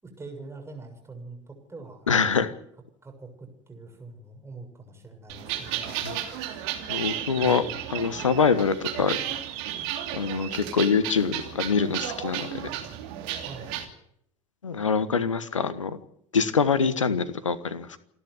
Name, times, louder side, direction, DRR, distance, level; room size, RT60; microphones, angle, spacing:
voice 1, 0.0-2.1 3.0-6.0 6.4-6.6 7.3-7.8 13.4-13.7, right 3 dB, 15° right, 4 dB, 7.0 m, -43 dB
voice 2, 2.1-2.5 6.0-6.2 6.9-7.6 7.9-9.2 10.1-12.5 14.6-16.0 16.3-18.0, left 5 dB, 80° left, 16 dB, 1.2 m, -24 dB
sound 1, 5.3-13.8, right 11 dB, 60° right, 3.0 m, -33 dB
28.0 x 11.0 x 9.6 m, 0.73 s
figure-of-eight pair, 65°, 16 cm